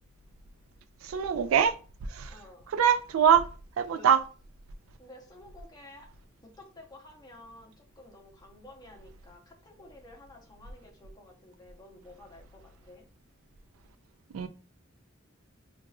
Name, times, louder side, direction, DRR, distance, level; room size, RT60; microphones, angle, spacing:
voice 1, 1.0-1.7 2.1-2.3 2.7-3.4 3.8-4.2 14.3-14.5, right 8 dB, 85° right, 0.3 m, -23 dB
voice 2, 2.3-2.7 3.9-4.1 5.0-6.1 6.6-13.0, left 1 dB, 20° left, 0.8 m, -52 dB
4.6 x 2.4 x 2.3 m
head